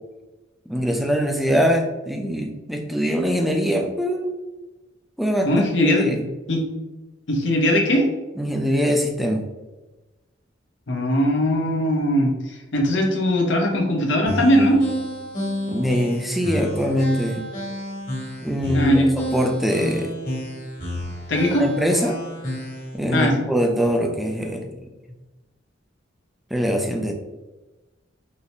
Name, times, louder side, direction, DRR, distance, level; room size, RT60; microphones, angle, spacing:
voice 1, 0.7-4.4 5.2-6.3 8.4-9.4 15.7-17.5 18.4-20.1 21.6-22.2 22.9-24.7 26.5-27.1, equal, ahead, 2 dB, 0.3 m, -23 dB
voice 2, 5.4-6.1 6.5-6.6 7.3-8.0 10.9-14.8 18.7-19.1 21.3-21.6 23.1-23.4, equal, 65° left, 0 dB, 0.7 m, -20 dB
sound 1, 14.3-23.0, equal, 45° left, 1.1 m, -30 dB
3.9 x 2.1 x 2.9 m, 1.1 s
head